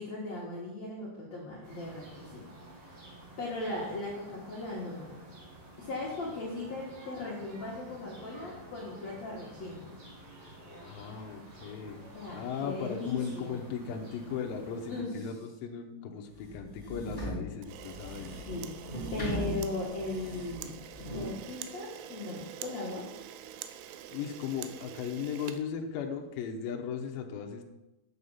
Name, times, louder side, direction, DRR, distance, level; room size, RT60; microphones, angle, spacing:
voice 1, 0.0-2.4 2.8-3.0 3.4-5.2 5.8-10.0 12.1-13.6 14.9-15.3 18.5-23.1, left 2 dB, 55° left, -6 dB, 2.1 m, -38 dB
sound 1, 1.6-15.0, right 1 dB, 50° right, 2.1 m, -51 dB
voice 2, 10.8-12.0 12.3-18.4 24.1-27.6, left 7 dB, 75° left, 2 dB, 2.3 m, -37 dB
sound 2, 16.3-21.4, right 1 dB, 20° left, 1.2 m, -39 dB
Camera, 17.6-26.3, right 11 dB, 80° right, 2.4 m, -46 dB
8.7 x 6.7 x 5.6 m, 1.0 s
omnidirectional pair, 5.0 m